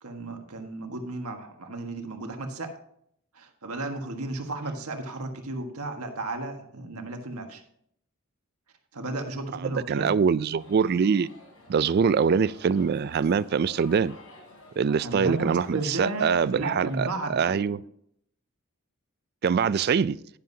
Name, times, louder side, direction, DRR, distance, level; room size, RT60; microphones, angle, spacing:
voice 1, 0.0-2.7 3.3-7.6 8.9-10.1 15.0-17.8, right 2 dB, 90° right, 1.5 m, -34 dB
voice 2, 9.6-11.3 11.7-14.1 14.8-17.8 19.4-20.2, right 6 dB, 45° right, 0.3 m, -24 dB
sound 1, 10.6-17.1, left 1 dB, 75° left, 3.7 m, -51 dB
10.5 x 10.5 x 2.8 m
head